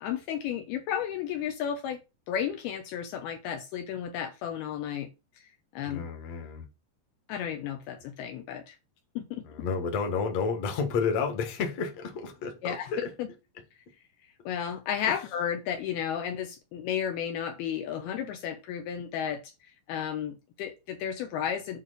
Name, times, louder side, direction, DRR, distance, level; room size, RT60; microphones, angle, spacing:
voice 1, 0.0-2.0 2.3-5.1 5.4-6.0 7.3-8.8 9.2-9.5 12.6-13.3 14.5-21.8, left 9 dB, 75° left, 2.7 m, -33 dB
voice 2, 5.8-6.7 9.4-13.1, left 5 dB, 50° left, 2.3 m, -31 dB
9.0 x 3.5 x 6.7 m
omnidirectional pair, 4.8 m